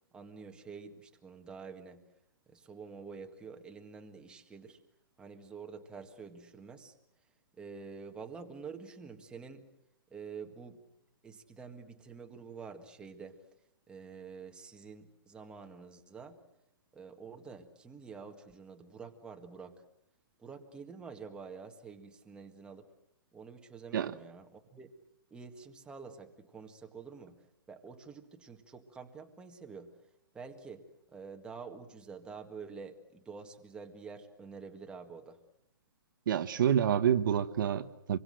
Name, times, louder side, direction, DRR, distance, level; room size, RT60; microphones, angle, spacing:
voice 1, 0.1-2.0 2.5-4.8 5.2-6.9 7.6-9.7 10.1-10.8 11.2-13.4 13.9-16.4 16.9-19.8 20.4-22.9 23.3-24.9 25.3-30.0 30.3-30.9 31.1-35.4, right 5 dB, 5° right, 4 dB, 1.8 m, -48 dB
voice 2, 36.3-38.2, right 9 dB, 60° right, 10 dB, 1.2 m, -28 dB
27.0 x 23.0 x 7.7 m, 0.77 s
hypercardioid pair, 165°, 13 cm